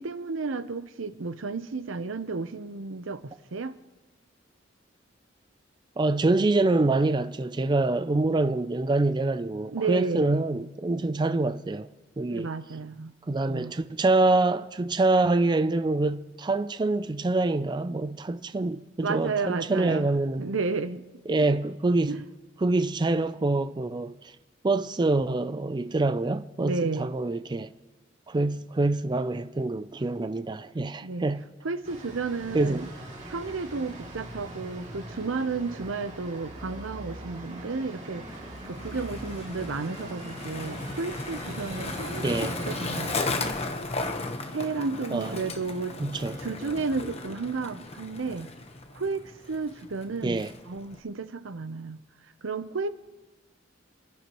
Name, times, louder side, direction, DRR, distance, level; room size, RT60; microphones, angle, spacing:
voice 1, 0.0-3.7 9.7-10.4 12.3-13.1 13.5-13.7 19.0-20.1 20.4-21.0 22.1-22.3 26.6-27.1 31.0-31.3 31.6-32.9 33.2-38.3 38.7-43.4 44.5-46.0 46.4-48.5 48.9-52.0 52.4-52.9, right 4 dB, 90° right, 0.7 m, -32 dB
voice 2, 6.0-11.9 12.2-12.5 13.3-20.5 21.3-22.2 22.6-24.1 24.6-27.7 28.3-31.5 32.5-32.9 42.2-42.5 45.1-45.3 46.0-46.4 50.2-50.5, right 2 dB, 25° right, 0.4 m, -25 dB
sound 1, 31.8-43.3, right 1 dB, 40° right, 2.7 m, -41 dB
Skateboard, 38.3-51.0, left 3 dB, 35° left, 1.1 m, -36 dB
28.0 x 13.0 x 3.0 m
head